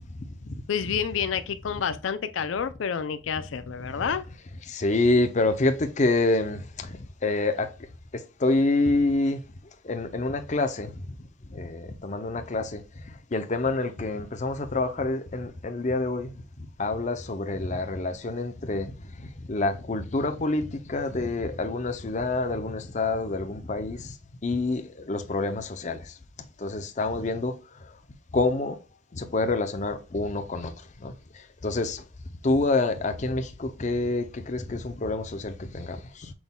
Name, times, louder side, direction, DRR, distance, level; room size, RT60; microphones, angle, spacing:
voice 1, 0.7-4.3, left 7 dB, 80° left, 0.4 m, -29 dB
voice 2, 4.7-7.0 7.2-7.7 8.4-9.4 9.8-10.9 11.5-12.8 13.3-16.3 16.8-18.9 19.5-24.1 24.4-26.0 26.6-27.5 28.3-28.8 29.1-30.7 31.0-31.1 31.6-32.0 32.4-36.3, left 2 dB, 40° left, 0.6 m, -27 dB
6.0 x 3.6 x 2.3 m
head